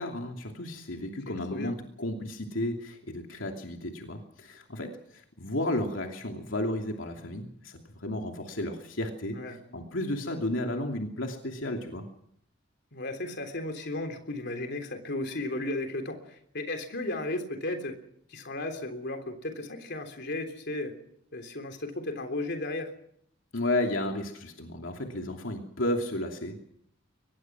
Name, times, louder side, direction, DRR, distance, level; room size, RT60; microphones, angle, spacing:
voice 1, 0.0-9.4 9.7-12.0 23.5-26.6, left 1 dB, 80° left, 2 dB, 2.8 m, -33 dB
voice 2, 1.3-1.8 9.3-9.6 12.9-18.0 18.3-20.9 21.3-22.9, left 2 dB, 60° left, 5 dB, 3.5 m, -35 dB
24.0 x 20.5 x 6.1 m, 0.71 s
head